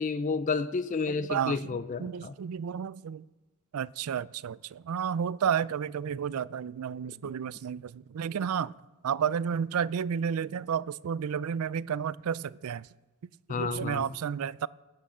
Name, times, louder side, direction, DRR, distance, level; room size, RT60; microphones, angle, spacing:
voice 1, 0.0-2.3 13.5-14.1, left 4 dB, 35° left, 13 dB, 0.3 m, -31 dB
voice 2, 1.1-3.2 3.7-8.7 9.0-12.9 13.5-14.7, right 7 dB, 80° right, 20 dB, 0.4 m, -31 dB
17.5 x 8.8 x 5.5 m, 1.1 s
head